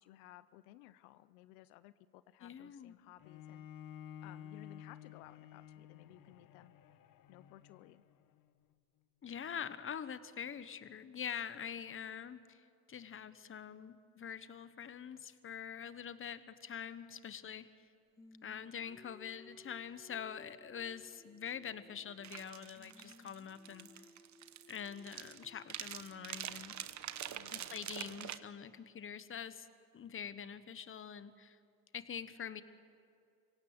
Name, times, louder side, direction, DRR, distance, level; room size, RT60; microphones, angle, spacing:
voice 1, 0.0-3.7 4.2-6.7 7.3-8.0 27.3-27.6 28.0-28.1, left 15 dB, 85° left, 15 dB, 0.7 m, -58 dB
voice 2, 2.4-2.9 9.2-17.7 18.4-23.9 24.7-26.8 27.5-29.7 29.9-31.6 31.9-32.6, left 8 dB, 30° left, 13 dB, 1.1 m, -45 dB
Bowed string instrument, 3.2-8.4, left 9 dB, 50° left, 1.2 m, -53 dB
Singing, 18.2-22.5 22.8-28.8, left 2 dB, 10° left, 0.7 m, -62 dB
sound 1, 22.2-28.4, right 10 dB, 40° right, 1.0 m, -45 dB
25.5 x 17.0 x 8.0 m, 2.4 s
supercardioid pair, 95°, 42 cm